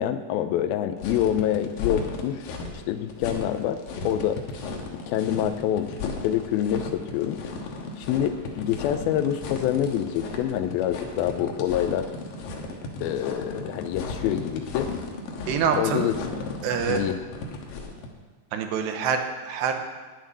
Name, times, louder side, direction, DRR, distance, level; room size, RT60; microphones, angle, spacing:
voice 1, 0.0-2.5 2.7-4.4 5.1-7.4 8.0-12.1 13.0-14.9 15.8-16.2 16.9-17.2, left 11 dB, 85° left, 9 dB, 2.2 m, -26 dB
sound 1, 1.0-18.1, left 3 dB, 65° left, 2.7 m, -35 dB
voice 2, 15.5-16.1 16.6-17.0 18.5-19.9, right 7 dB, 85° right, 5 dB, 3.2 m, -26 dB
10.0 x 7.6 x 9.6 m, 1.4 s
omnidirectional pair, 4.9 m